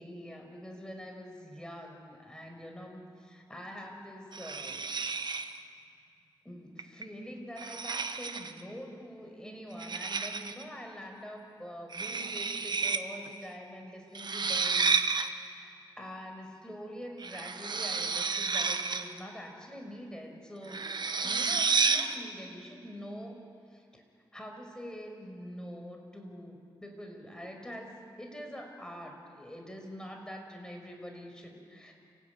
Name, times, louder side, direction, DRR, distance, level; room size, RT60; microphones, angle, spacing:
voice 1, 0.0-4.9 6.4-15.7 16.0-20.9 21.2-23.4 23.7-24.0 24.3-31.9, equal, 10° left, 2 dB, 5.7 m, -45 dB
sound 1, 4.3-5.6 6.8-7.0 7.6-8.6 9.8-10.6 11.9-13.0 13.3-13.4 14.1-15.3 17.2-19.2 20.7-22.1, right 4 dB, 55° right, 1.3 m, -31 dB
29.5 x 16.5 x 9.5 m, 2.3 s
cardioid pair, 80°, 9 cm